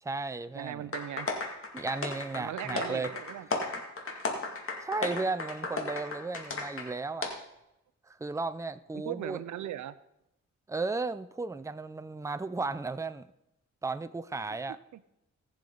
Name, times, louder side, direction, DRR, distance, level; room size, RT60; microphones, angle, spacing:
voice 1, 0.0-0.9 1.7-3.1 4.8-7.3 8.1-9.4 10.7-13.2 13.8-14.8, right 3 dB, 10° right, 0.5 m, -34 dB
voice 2, 0.5-1.3 2.4-3.5 8.9-10.0 14.9-15.0, right 12 dB, 90° right, 0.6 m, -38 dB
sound 1, 0.9-6.9 7.2-7.3, left 3 dB, 50° left, 2.2 m, -34 dB
18.5 x 6.9 x 4.0 m
cardioid pair, 75°, 29 cm